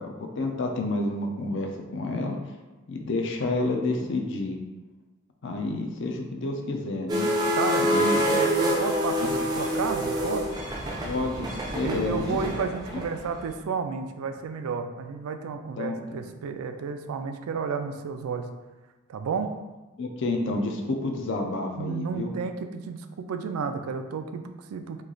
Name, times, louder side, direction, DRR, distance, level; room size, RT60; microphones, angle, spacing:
voice 1, 0.0-2.4 2.9-4.6 5.4-7.3 7.8-8.2 9.2-9.3 11.0-12.3 15.8-16.2 20.0-22.3, left 2 dB, 55° left, 3 dB, 0.4 m, -29 dB
sound 1, 7.1-13.4, equal, 20° right, 0.4 m, -27 dB
voice 2, 7.6-10.5 11.8-18.5 19.1-19.5 21.8-25.0, right 5 dB, 85° right, 7 dB, 0.3 m, -32 dB
3.1 x 2.3 x 3.7 m, 1.2 s
head